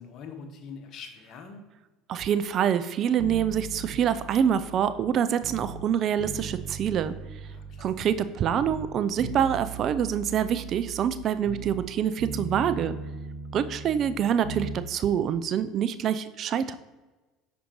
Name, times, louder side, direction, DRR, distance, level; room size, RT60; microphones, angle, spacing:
voice 1, 0.0-1.6 7.4-8.1, left 5 dB, 55° left, 4 dB, 1.2 m, -44 dB
voice 2, 2.1-7.1 7.8-12.9 13.5-16.7, right 8 dB, 50° right, 12 dB, 0.4 m, -26 dB
sound 1, 3.2-5.9 6.2-8.2 8.5-11.9 12.2-14.8 15.1-15.2, right 5 dB, 75° right, 1.0 m, -38 dB
6.4 x 5.1 x 3.0 m, 1.2 s
hypercardioid pair, 80°, 0 cm